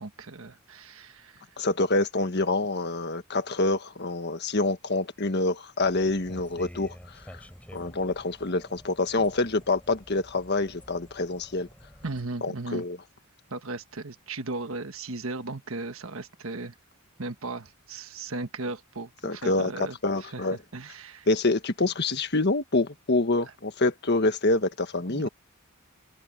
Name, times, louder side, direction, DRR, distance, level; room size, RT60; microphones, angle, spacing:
voice 1, 0.0-1.5 12.0-12.8 13.5-16.7 17.2-21.3 25.1-25.3, right 3 dB, 75° right, 1.4 m, -36 dB
voice 2, 1.6-7.4 7.7-11.7 12.4-13.0 19.2-19.7 20.0-20.6 21.3-25.3, left 2 dB, 50° left, 1.5 m, -26 dB
sound 1, 5.8-12.2, equal, 5° left, 3.7 m, -49 dB
open air
head